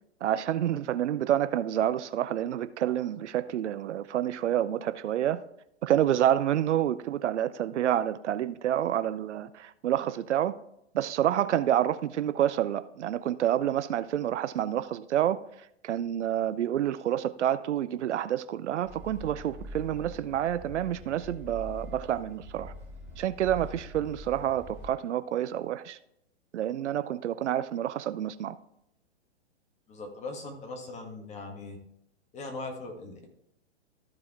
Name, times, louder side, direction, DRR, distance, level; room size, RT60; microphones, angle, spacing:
voice 1, 0.2-5.4 5.8-10.5 10.9-15.4 15.8-22.7 23.2-26.0 26.5-28.5, right 11 dB, 75° right, 0.6 m, -28 dB
sound 1, 18.8-24.9, equal, 5° right, 2.6 m, -44 dB
voice 2, 29.9-31.8 32.3-33.3, left 3 dB, 20° left, 1.7 m, -40 dB
14.0 x 4.8 x 3.6 m
hypercardioid pair, 135°, 35 cm